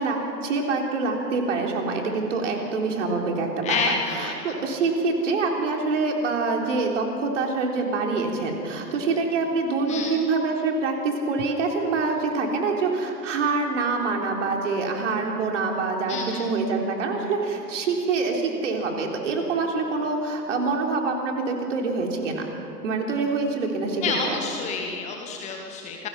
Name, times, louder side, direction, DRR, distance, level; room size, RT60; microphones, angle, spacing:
voice 1, 0.0-22.5 22.8-24.4, right 3 dB, 45° right, 1 dB, 3.8 m, -25 dB
voice 2, 3.6-4.6 9.9-10.2 16.1-16.5 24.0-26.1, left 5 dB, 15° left, 2 dB, 1.2 m, -29 dB
28.5 x 20.0 x 5.9 m, 2.8 s
figure-of-eight pair, 125°, 50 cm